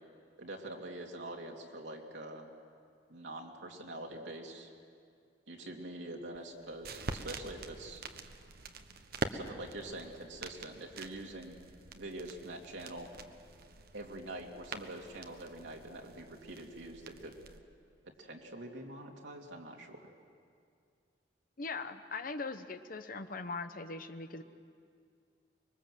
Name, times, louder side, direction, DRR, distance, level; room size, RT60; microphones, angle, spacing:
voice 1, 0.4-2.5 3.1-4.7 5.5-8.0 9.3-11.6 11.9-13.1 13.9-17.3 18.2-20.1, right 1 dB, 85° right, 0 dB, 2.7 m, -45 dB
sound 1, 6.3-17.6, right 3 dB, 55° right, 1.2 m, -45 dB
voice 2, 21.6-24.4, left 3 dB, 50° left, 8 dB, 1.1 m, -40 dB
25.0 x 22.0 x 7.7 m, 2.3 s
head